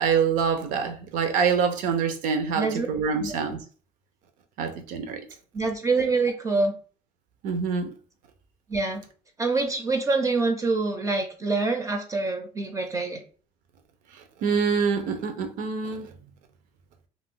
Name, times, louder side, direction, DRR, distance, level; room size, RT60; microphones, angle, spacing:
voice 1, 0.0-3.6 4.6-5.2 7.4-7.9 14.4-16.1, right 6 dB, 75° right, 0.6 m, -25 dB
voice 2, 2.5-2.9 3.2-3.3 5.5-6.7 8.7-9.0 9.4-13.2, right 3 dB, 25° right, 0.4 m, -25 dB
2.5 x 2.1 x 3.6 m
cardioid pair, 125°, 13 cm